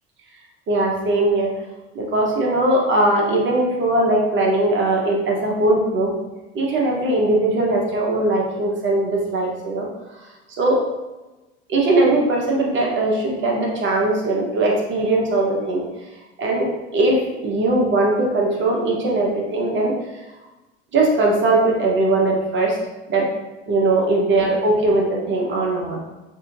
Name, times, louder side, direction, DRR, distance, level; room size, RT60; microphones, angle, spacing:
voice 1, 0.7-1.5 1.9-6.1 6.5-9.9 10.6-10.8 11.7-15.8 16.4-16.7 16.9-19.9 20.9-22.8 23.1-23.2 23.7-26.0, right 2 dB, 35° right, -1 dB, 1.1 m, -20 dB
6.0 x 2.7 x 2.6 m, 1.1 s
figure-of-eight pair, 65°, 33 cm